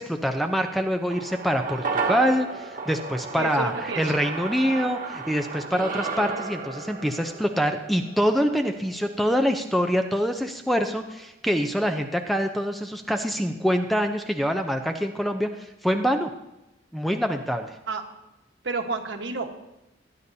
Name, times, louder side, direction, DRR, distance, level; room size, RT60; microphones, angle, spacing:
voice 1, 0.0-16.3 16.9-17.8, equal, ahead, 5 dB, 0.6 m, -25 dB
sound 1, 1.1-9.6 9.9-10.0, right 4 dB, 45° right, 1.3 m, -33 dB
voice 2, 3.3-4.1 17.9-18.0 18.6-19.5, right 4 dB, 65° right, 4 dB, 1.3 m, -30 dB
19.5 x 9.9 x 2.8 m, 0.93 s
head